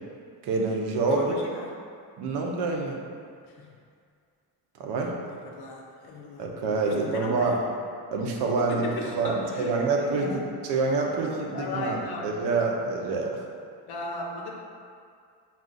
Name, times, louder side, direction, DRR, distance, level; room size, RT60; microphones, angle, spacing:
voice 1, 0.4-1.4 2.2-3.0 4.8-5.2 6.4-7.6 8.1-13.4, right 3 dB, 85° right, 0 dB, 0.7 m, -27 dB
voice 2, 1.1-1.7 3.6-3.7 5.4-6.4 6.9-7.6 8.7-10.4 11.0-12.3 13.9-14.5, left 3 dB, 70° left, -1 dB, 0.7 m, -36 dB
3.6 x 2.4 x 3.9 m, 2.2 s
cardioid pair, 115°, 40 cm